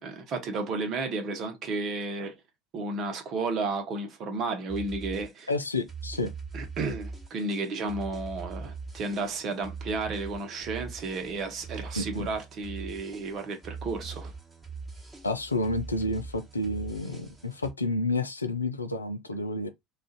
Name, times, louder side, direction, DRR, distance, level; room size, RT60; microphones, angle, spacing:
voice 1, 0.0-2.4 2.7-5.5 6.5-14.3, right 3 dB, 45° right, 0.9 m, -32 dB
sound 1, 4.7-17.7, right 4 dB, 10° right, 1.2 m, -42 dB
voice 2, 5.5-6.3 11.9-12.3 15.2-19.7, left 2 dB, 85° left, 0.4 m, -30 dB
2.5 x 2.4 x 3.9 m
figure-of-eight pair, 70°, 0 cm